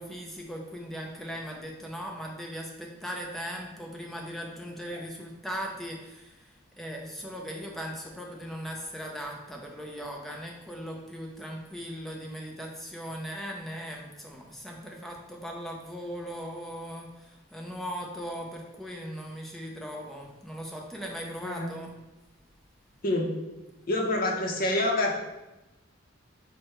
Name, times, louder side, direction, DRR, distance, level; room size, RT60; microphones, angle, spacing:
voice 1, 0.0-21.9, equal, ahead, -1 dB, 0.5 m, -39 dB
voice 2, 21.4-21.8 23.0-23.4 23.9-25.1, left 1 dB, 45° left, 1 dB, 0.6 m, -27 dB
4.4 x 2.2 x 4.6 m, 1.0 s
head